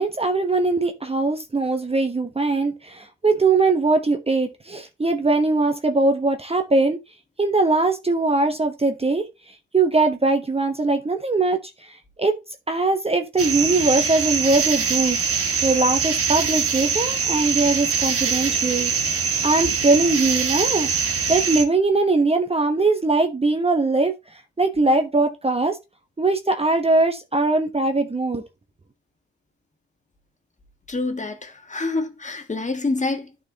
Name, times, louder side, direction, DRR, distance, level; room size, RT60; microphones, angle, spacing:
voice 1, 0.0-7.0 7.4-9.3 9.7-12.3 12.7-24.1 24.6-25.8 26.2-28.4, right 3 dB, 20° right, 1.0 m, -21 dB
sound 1, 13.4-21.6, right 6 dB, 50° right, 1.7 m, -23 dB
voice 2, 30.9-33.5, left 3 dB, 25° left, 1.6 m, -27 dB
12.0 x 4.5 x 2.9 m
hypercardioid pair, 45°, 30 cm